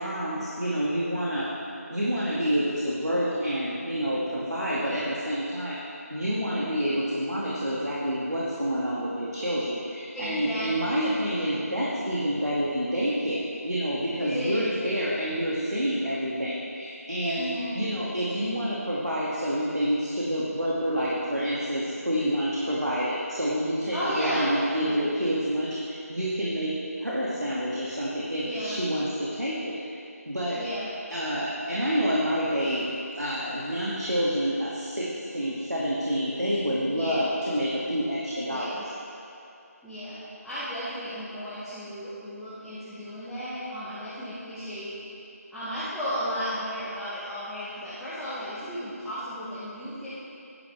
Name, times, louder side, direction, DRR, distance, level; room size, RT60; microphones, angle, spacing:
voice 1, 0.0-1.5 1.9-5.8 6.1-17.4 17.7-26.7 27.0-29.8 30.3-30.6 31.1-32.9 33.2-38.8, equal, 90° right, -7 dB, 2.3 m, -28 dB
voice 2, 10.1-11.0 11.3-11.7 14.2-14.7 17.3-17.8 23.9-25.1 28.4-28.8 30.6-30.9 36.9-37.3 38.5-38.8 39.8-40.2 40.4-44.9 45.5-50.1, equal, ahead, -16 dB, 1.1 m, -34 dB
16.0 x 10.5 x 3.5 m, 2.7 s
figure-of-eight pair, 160°, 9 cm